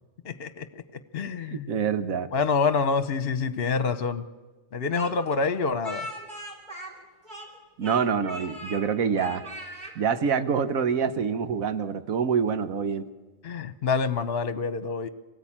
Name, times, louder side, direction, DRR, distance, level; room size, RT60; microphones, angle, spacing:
voice 1, 0.2-0.8 1.1-1.7 2.3-4.2 4.7-6.1 13.4-15.1, left 4 dB, 50° left, 11 dB, 1.0 m, -27 dB
voice 2, 1.5-2.3 7.8-9.4 10.0-13.1, right 6 dB, 90° right, 10 dB, 1.5 m, -26 dB
Speech, 4.9-7.6 7.8-8.8 9.1-9.9, equal, 35° right, 3.6 m, -39 dB
26.0 x 18.0 x 8.7 m, 1.3 s
omnidirectional pair, 1.4 m